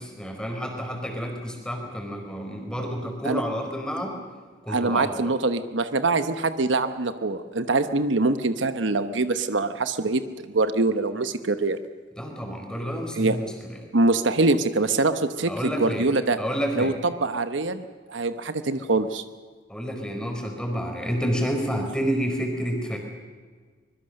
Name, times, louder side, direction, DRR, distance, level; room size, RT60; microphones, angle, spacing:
voice 1, 0.0-4.2 4.6-5.3 12.2-13.8 15.5-16.1 16.4-16.9 19.7-23.0, equal, 5° left, 2 dB, 4.4 m, -29 dB
voice 2, 4.7-11.8 13.2-13.4 13.9-16.4 16.7-19.2, right 3 dB, 70° right, 10 dB, 1.0 m, -24 dB
24.5 x 21.5 x 6.6 m, 1.5 s
head